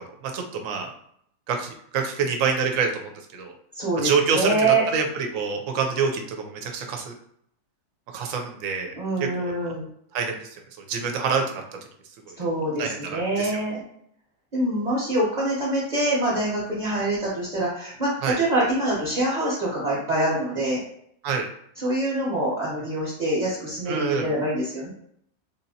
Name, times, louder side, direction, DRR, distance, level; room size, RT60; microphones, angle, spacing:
voice 1, 0.2-0.9 1.5-3.5 4.0-4.5 4.9-7.1 8.1-8.9 9.2-9.7 10.1-10.5 10.9-11.6 12.3-12.4 12.8-13.5 18.2-18.4 21.2-21.5 23.9-24.3, right 5 dB, 65° right, 3 dB, 0.9 m, -26 dB
voice 2, 3.7-4.8 8.9-9.9 12.4-13.8 14.5-20.8 21.8-24.9, right 1 dB, 35° right, -6 dB, 0.9 m, -25 dB
3.5 x 2.9 x 2.7 m, 0.69 s
omnidirectional pair, 1.6 m